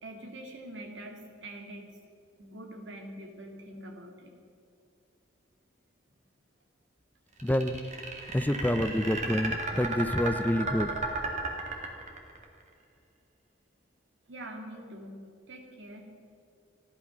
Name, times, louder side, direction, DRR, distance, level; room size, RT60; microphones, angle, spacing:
voice 1, 0.0-1.9 2.4-4.3 14.3-15.2 15.5-16.1, right 1 dB, 75° right, 3 dB, 2.4 m, -44 dB
voice 2, 7.4-7.8 8.3-10.9, left 1 dB, 10° left, 11 dB, 0.5 m, -27 dB
sound 1, 7.4-12.4, right 3 dB, 40° right, 2.2 m, -34 dB
16.0 x 11.5 x 6.1 m, 2.5 s
head